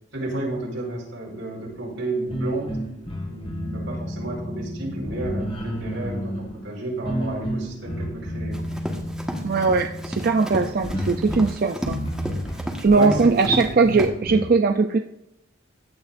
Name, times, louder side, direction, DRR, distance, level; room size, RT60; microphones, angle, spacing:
voice 1, 0.1-2.8 3.3-8.7 12.9-13.7, right 2 dB, 90° right, -2 dB, 4.9 m, -31 dB
sound 1, 2.3-14.4, equal, 30° left, 2.2 m, -31 dB
Run, 8.5-13.7 14.0-14.1, equal, 5° right, 1.4 m, -33 dB
voice 2, 9.4-12.0 12.8-15.0, right 4 dB, 50° right, 6 dB, 0.5 m, -20 dB
16.0 x 10.5 x 2.6 m, 0.82 s
head